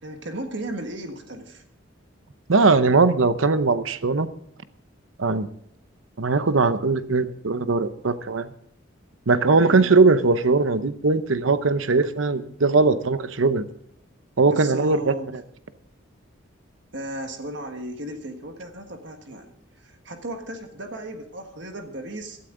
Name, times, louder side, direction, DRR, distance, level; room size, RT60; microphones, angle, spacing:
voice 1, 0.0-1.6 9.5-9.9 14.4-15.3 16.9-22.4, right 1 dB, 60° right, 5 dB, 1.6 m, -35 dB
voice 2, 2.5-4.3 5.2-5.5 6.2-8.5 9.3-13.6 14.4-15.1, right 3 dB, 80° right, 12 dB, 0.8 m, -20 dB
17.0 x 12.5 x 3.8 m, 0.70 s
head